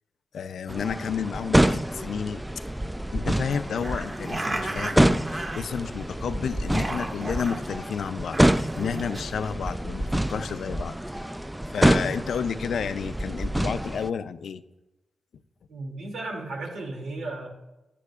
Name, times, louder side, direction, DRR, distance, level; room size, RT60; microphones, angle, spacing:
voice 1, 0.3-2.4 3.1-10.9 11.7-14.6, left 7 dB, 80° left, 12 dB, 0.5 m, -31 dB
sound 1, 0.7-14.1, right 1 dB, 5° right, 0.4 m, -27 dB
sound 2, 3.7-6.1 6.5-7.7 8.2-9.2, right 2 dB, 30° right, 1.5 m, -34 dB
voice 2, 15.7-17.5, right 2 dB, 90° right, 0 dB, 2.6 m, -34 dB
14.5 x 10.0 x 2.4 m, 1.0 s
cardioid pair, 80°, 0 cm